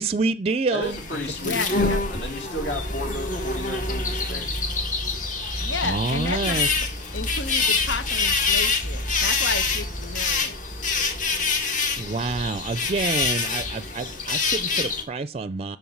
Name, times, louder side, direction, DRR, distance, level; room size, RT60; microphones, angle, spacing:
voice 1, 0.0-1.0 1.4-1.9 5.8-6.7 12.0-15.8, right 3 dB, 35° right, 0.4 m, -27 dB
voice 2, 0.7-4.5, equal, 65° left, 3.0 m, -33 dB
sound 1, 0.8-15.0, left 4 dB, 45° left, 1.6 m, -26 dB
voice 3, 1.4-2.0 5.6-6.6 7.1-10.6, left 4 dB, 85° left, 1.1 m, -31 dB
sound 2, 2.7-11.2, right 1 dB, 10° left, 0.8 m, -34 dB
7.1 x 6.8 x 7.2 m
head